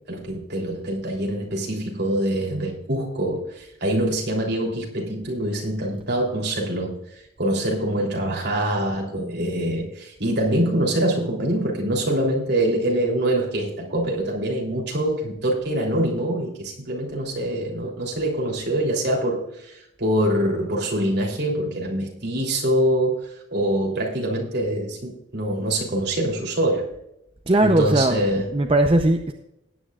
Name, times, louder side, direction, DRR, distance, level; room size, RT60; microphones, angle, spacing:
voice 1, 0.1-26.9 27.6-28.5, right 1 dB, 50° right, -2 dB, 3.3 m, -24 dB
voice 2, 27.5-28.2 28.5-29.3, right 1 dB, 25° right, 4 dB, 0.6 m, -18 dB
19.0 x 9.5 x 2.4 m, 0.83 s
head